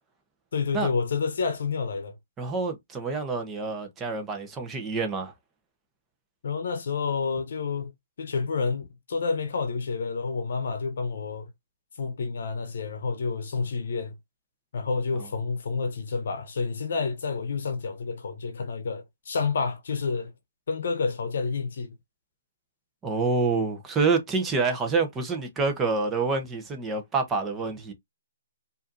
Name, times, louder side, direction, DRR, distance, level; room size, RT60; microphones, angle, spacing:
voice 1, 0.5-2.2 6.4-7.9 8.2-11.5 12.0-14.1 14.7-20.3 20.7-22.0, left 4 dB, 65° left, 0.9 m, -29 dB
voice 2, 2.4-5.3 15.1-15.3 23.0-27.9, right 4 dB, 15° right, 1.0 m, -27 dB
4.8 x 2.7 x 2.6 m
hypercardioid pair, 155°, 0 cm